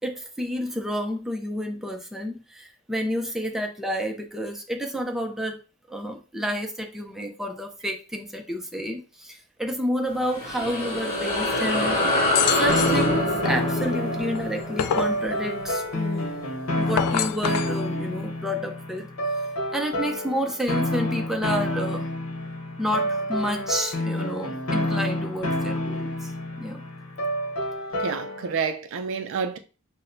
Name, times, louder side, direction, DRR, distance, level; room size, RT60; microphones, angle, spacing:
voice 1, 0.0-5.6 5.9-12.0 12.5-16.3 16.8-19.1 19.7-22.1 22.8-26.3 26.6-26.8, equal, ahead, 0.5 m, -30 dB
sound 1, 10.1-16.9, left 1 dB, 25° left, 1.6 m, -26 dB
sound 2, 12.3-13.0 14.4-15.2 16.8-17.8, left 9 dB, 90° left, 0.3 m, -26 dB
sound 3, 12.7-28.6, left 1 dB, 75° left, 0.9 m, -29 dB
voice 2, 28.0-29.6, right 6 dB, 60° right, 0.4 m, -29 dB
6.0 x 2.1 x 2.6 m
head